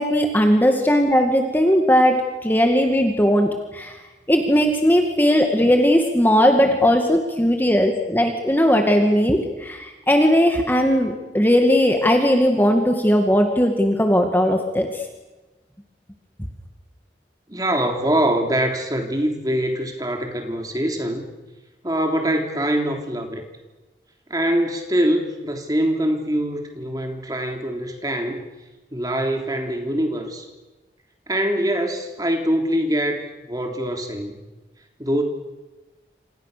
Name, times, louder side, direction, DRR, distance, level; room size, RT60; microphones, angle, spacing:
voice 1, 0.0-3.9 4.3-14.9, equal, 10° left, 3 dB, 2.1 m, -18 dB
voice 2, 17.5-21.2 21.8-23.4 24.3-28.4 28.9-30.4 31.3-34.4 35.0-35.2, right 1 dB, 20° right, 3 dB, 3.4 m, -23 dB
28.0 x 27.0 x 6.8 m, 1.1 s
head